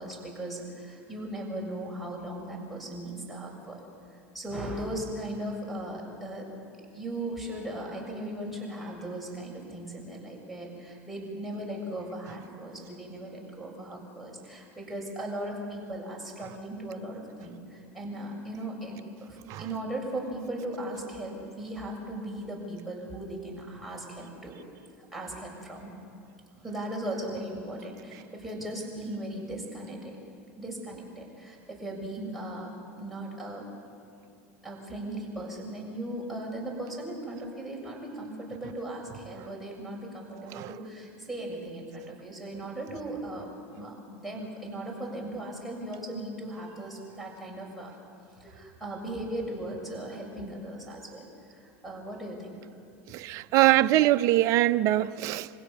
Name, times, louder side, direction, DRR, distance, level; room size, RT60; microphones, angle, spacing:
voice 1, 0.0-3.8 4.3-6.5 6.9-24.6 25.1-25.9 26.6-30.1 30.6-32.7 33.0-33.7 34.6-43.5 43.8-47.9 48.4-52.6, right 1 dB, ahead, 7.0 m, -38 dB
voice 2, 53.1-55.5, right 15 dB, 55° right, 0.7 m, -23 dB
26.0 x 16.5 x 7.4 m
hypercardioid pair, 90°, 7 cm